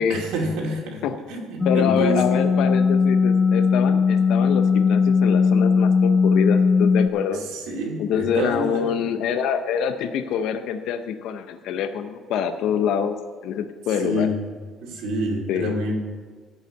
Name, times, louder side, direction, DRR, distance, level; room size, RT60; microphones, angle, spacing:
voice 1, 0.0-2.6 7.3-8.9 14.0-14.4 14.8-15.9, right 1 dB, 80° right, -1 dB, 2.6 m, -28 dB
sound 1, 1.6-7.1, left 5 dB, 20° left, 0.4 m, -19 dB
voice 2, 1.7-7.4 8.0-13.1 13.4-14.3 15.5-15.7, left 8 dB, 65° left, 8 dB, 0.6 m, -25 dB
13.0 x 5.6 x 8.0 m, 1.5 s
cardioid pair, 160°, 0 cm